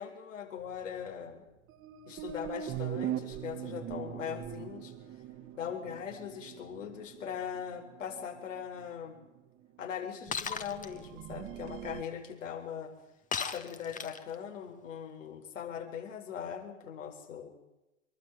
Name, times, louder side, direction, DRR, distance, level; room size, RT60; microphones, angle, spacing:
voice 1, 0.0-1.4 2.1-4.9 5.5-9.2 9.8-12.9 13.4-17.5, left 8 dB, 70° left, 3 dB, 7.8 m, -40 dB
sound 1, 0.7-1.1 1.7-9.0 9.2-9.3 9.6-9.7 10.3-12.0, right 11 dB, 35° right, 2.2 m, -41 dB
Shatter, 10.3-10.9 13.3-14.3, left 6 dB, 20° left, 2.1 m, -35 dB
26.5 x 23.0 x 9.5 m, 0.97 s
hypercardioid pair, 100°, 39 cm